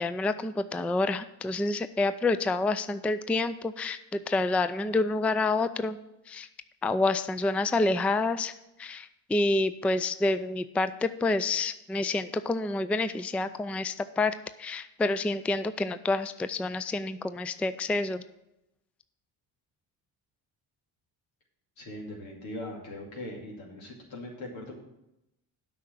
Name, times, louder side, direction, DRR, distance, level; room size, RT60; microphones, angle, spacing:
voice 1, 0.0-6.0 6.3-6.5 6.8-8.5 8.8-18.2, left 2 dB, 5° left, 12 dB, 0.3 m, -28 dB
voice 2, 21.8-24.8, left 1 dB, 85° left, -1 dB, 2.6 m, -40 dB
8.5 x 5.5 x 7.6 m, 0.88 s
supercardioid pair, 60°, 46 cm